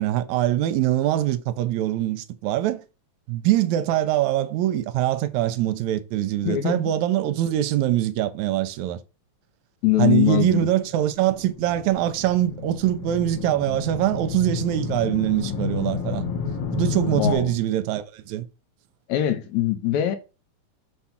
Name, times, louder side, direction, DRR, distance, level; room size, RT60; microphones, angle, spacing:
voice 1, 0.0-2.8 3.3-9.0 10.0-16.3 16.7-18.5, right 13 dB, 85° right, 1.9 m, -23 dB
voice 2, 6.5-6.8 9.8-10.7 17.1-17.5 19.1-20.2, left 12 dB, 75° left, 2.3 m, -22 dB
sound 1, 10.8-17.4, left 5 dB, 55° left, 1.8 m, -30 dB
6.1 x 3.6 x 5.7 m
omnidirectional pair, 3.4 m